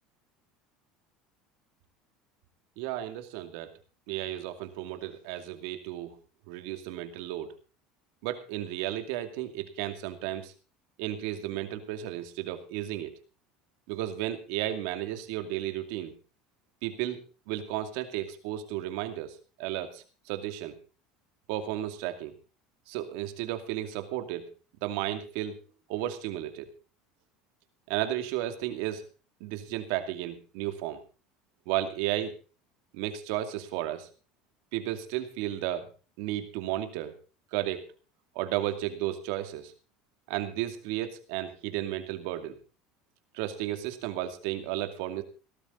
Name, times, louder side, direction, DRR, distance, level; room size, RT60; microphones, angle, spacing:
voice 1, 2.8-3.7 4.1-6.1 6.5-7.5 8.2-10.5 11.0-13.1 13.9-16.1 16.8-20.8 21.5-22.3 22.9-24.5 24.8-25.6 25.9-26.7 27.9-29.1 29.4-31.0 31.7-32.4 32.9-34.1 34.7-35.9 36.2-37.2 37.5-37.9 38.3-39.7 40.3-42.6 43.3-45.2, right 13 dB, 75° right, 8 dB, 2.4 m, -33 dB
18.5 x 12.5 x 3.9 m, 0.35 s
supercardioid pair, 110°, 0 cm